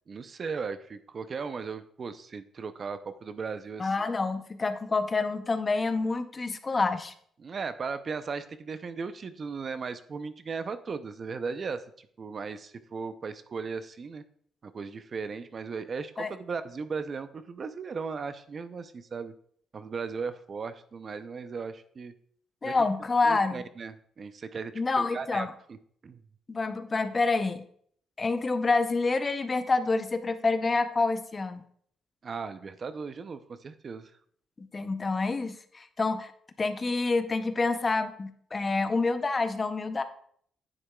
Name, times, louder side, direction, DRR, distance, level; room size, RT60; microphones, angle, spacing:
voice 1, 0.1-4.0 7.4-14.2 14.6-19.3 19.7-22.1 22.6-22.7 23.2-25.5 26.0-26.2 32.2-34.1, right 5 dB, 45° right, 12 dB, 0.5 m, -37 dB
voice 2, 3.8-7.1 16.2-16.3 22.6-23.6 24.7-25.5 26.5-27.6 28.2-31.6 34.6-36.3 36.6-40.0, left 3 dB, 30° left, 10 dB, 0.6 m, -27 dB
9.7 x 7.7 x 2.3 m, 0.63 s
cardioid pair, 90°, 0 cm